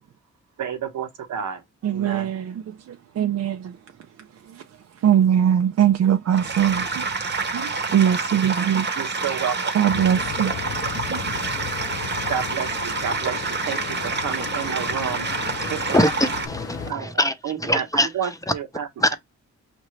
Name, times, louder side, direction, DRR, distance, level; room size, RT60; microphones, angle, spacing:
voice 1, 0.6-1.6 1.9-2.3 9.0-9.7 12.3-16.1 16.9-19.2, right 8 dB, 90° right, 1.0 m, -31 dB
voice 2, 1.8-3.8 4.4-4.6 4.9-7.1 7.5-8.9 9.7-10.5 10.9-11.3 14.6-14.8, right 9 dB, 60° right, 0.5 m, -22 dB
sound 1, 6.3-16.5, right 4 dB, 35° right, 0.9 m, -28 dB
sound 2, 9.9-16.9, left 10 dB, 55° left, 0.4 m, -35 dB
voice 3, 15.6-17.3 17.6-18.1 19.0-19.2, left 1 dB, 10° left, 0.6 m, -22 dB
5.2 x 2.5 x 3.1 m
cardioid pair, 80°, 29 cm